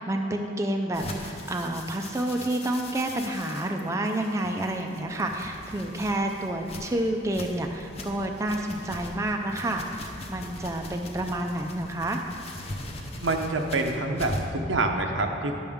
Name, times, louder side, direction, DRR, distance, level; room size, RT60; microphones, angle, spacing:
voice 1, 0.0-12.2, right 1 dB, 15° right, 3 dB, 0.3 m, -29 dB
sound 1, 0.9-14.6, left 1 dB, 30° left, 0.7 m, -40 dB
voice 2, 13.2-15.6, right 2 dB, 80° right, 4 dB, 0.7 m, -26 dB
10.0 x 6.9 x 3.5 m, 2.6 s
head